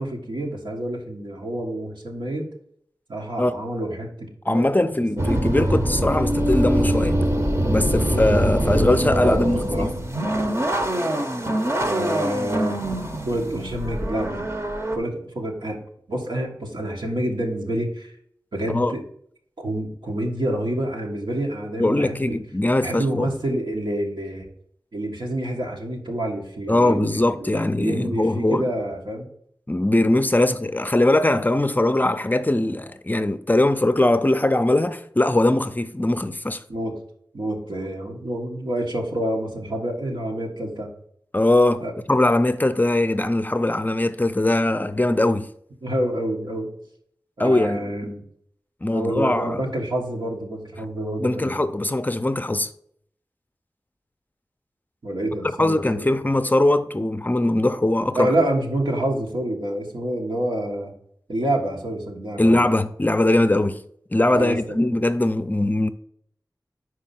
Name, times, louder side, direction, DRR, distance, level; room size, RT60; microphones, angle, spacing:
voice 1, 0.0-2.5 3.1-4.3 4.5-4.8 5.2-5.3 9.2-9.9 11.8-12.8 13.2-14.5 14.9-15.8 16.1-18.1 18.5-19.0 19.6-22.4 22.8-24.5 24.9-29.3 36.7-36.9 37.3-40.9 41.8-41.9 45.8-46.7 47.4-48.2 48.9-51.7 55.0-56.2 58.1-60.9 61.3-62.6 64.3-65.1, right 1 dB, 90° right, 1.5 m, -28 dB
voice 2, 4.5-7.2 7.7-9.9 18.7-18.9 21.8-23.3 26.7-28.7 29.7-36.6 41.3-45.5 47.4-47.9 48.8-49.6 51.2-52.7 55.6-58.3 62.4-63.8 64.1-65.9, left 1 dB, 25° left, 0.5 m, -21 dB
sound 1, 5.2-15.0, right 1 dB, 35° right, 0.8 m, -23 dB
5.4 x 4.8 x 5.8 m
wide cardioid pair, 55°, 8 cm